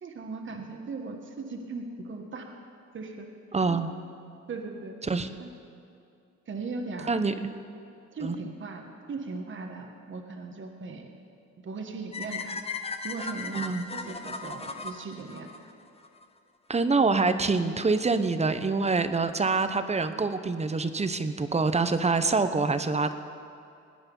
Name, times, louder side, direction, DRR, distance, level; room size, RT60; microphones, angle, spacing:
voice 1, 0.0-2.6 2.9-3.3 3.7-3.8 4.5-5.0 5.4-5.5 6.5-7.1 8.1-11.1 11.6-12.6 13.0-15.5, right 3 dB, 40° right, 3 dB, 1.5 m, -38 dB
voice 2, 3.5-3.9 5.0-5.3 7.1-7.3 8.2-8.4 13.5-13.8 16.7-23.1, right 4 dB, 20° right, 10 dB, 0.8 m, -25 dB
sound 1, 12.1-16.3, left 4 dB, 20° left, 0.8 m, -37 dB
19.5 x 9.7 x 5.4 m, 2.5 s
cardioid pair, 90°, 30 cm